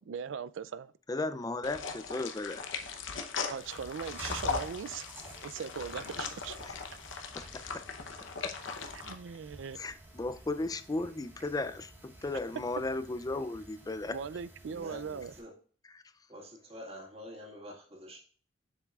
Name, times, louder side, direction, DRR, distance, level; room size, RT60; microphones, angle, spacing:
voice 1, 0.0-0.9 3.5-5.1 5.4-6.6 8.9-9.8 14.1-15.3, right 6 dB, 70° right, 0.4 m, -40 dB
voice 2, 1.1-2.8 6.6-6.7 7.3-7.8 9.8-14.2, left 2 dB, 20° left, 0.4 m, -35 dB
sound 1, 1.6-9.1, left 5 dB, 70° left, 0.9 m, -39 dB
Chewing mastication, 3.6-15.4, right 1 dB, 10° right, 2.2 m, -50 dB
voice 3, 14.7-15.5 16.3-18.2, equal, 30° right, 2.0 m, -47 dB
7.1 x 7.1 x 2.4 m
head